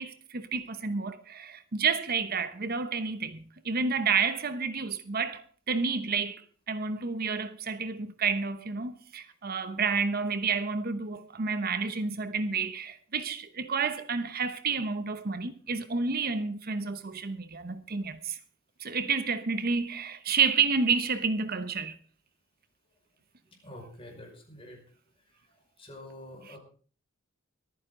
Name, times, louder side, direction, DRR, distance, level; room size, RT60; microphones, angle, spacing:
voice 1, 0.0-18.4 18.8-22.0 26.5-26.6, right 5 dB, 50° right, 1.0 m, -30 dB
voice 2, 23.6-24.8 25.4-26.6, left 1 dB, 30° left, 5.5 m, -47 dB
24.0 x 9.7 x 3.8 m
head